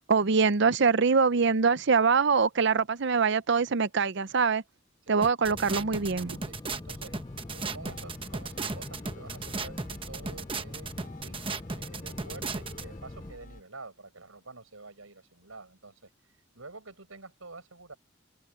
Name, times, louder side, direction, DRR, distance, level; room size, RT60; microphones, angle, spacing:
voice 1, 0.1-4.6 5.1-6.4, right 5 dB, 60° right, 0.6 m, -24 dB
sound 1, 5.2-12.8, right 4 dB, 25° right, 1.0 m, -36 dB
sound 2, 5.4-13.3, left 2 dB, 20° left, 0.4 m, -43 dB
voice 2, 6.5-7.2 7.5-10.9 11.2-16.1 16.5-17.9, right 3 dB, 85° right, 6.7 m, -48 dB
sound 3, 7.3-13.6, left 1 dB, 40° left, 6.2 m, -50 dB
open air
head